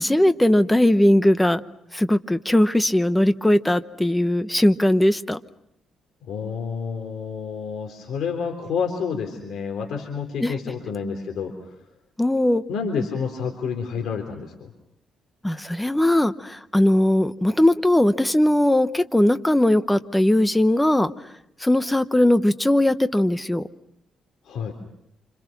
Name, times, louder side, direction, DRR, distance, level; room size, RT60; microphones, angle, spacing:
voice 1, 0.0-1.6 1.9-5.4 10.4-10.5 12.2-12.6 15.4-21.1 21.6-23.6, left 1 dB, 5° left, 11 dB, 1.0 m, -19 dB
voice 2, 6.3-11.8 12.7-14.7 24.4-24.7, left 6 dB, 75° left, 2 dB, 3.7 m, -29 dB
28.5 x 27.0 x 6.0 m, 0.81 s
cardioid pair, 130°, 0 cm